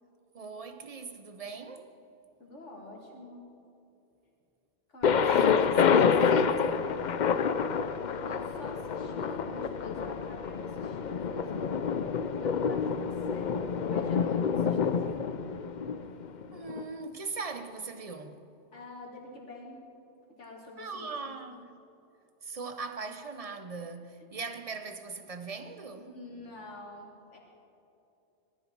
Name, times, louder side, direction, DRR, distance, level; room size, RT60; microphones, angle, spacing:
voice 1, 0.3-1.9 5.2-7.0 16.5-18.5 20.8-21.7 22.4-26.1, right 4 dB, 35° right, 0.9 m, -40 dB
voice 2, 2.4-3.6 4.9-6.0 6.9-7.5 8.3-15.5 18.7-19.8 20.3-21.6 26.1-27.4, left 1 dB, 80° left, 2.8 m, -47 dB
Thunder, 5.0-16.8, left 6 dB, 50° left, 0.6 m, -28 dB
19.5 x 14.5 x 4.7 m
omnidirectional pair, 1.2 m